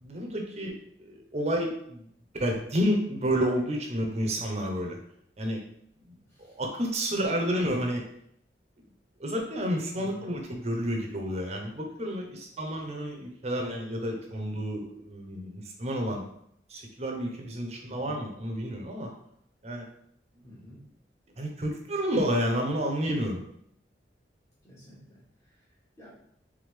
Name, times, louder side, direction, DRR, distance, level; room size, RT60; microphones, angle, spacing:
voice 1, 0.0-0.7 1.0-2.1 2.4-5.0 5.4-5.6 6.6-8.0 9.2-16.2 16.7-19.1 19.6-19.8 21.4-23.4, equal, 35° right, 2 dB, 0.8 m, -30 dB
voice 2, 6.3-6.6 7.1-7.4 9.9-10.4 17.8-18.3 20.4-20.9 24.6-26.1, left 1 dB, 15° left, -8 dB, 1.4 m, -50 dB
3.6 x 3.4 x 3.3 m, 0.70 s
head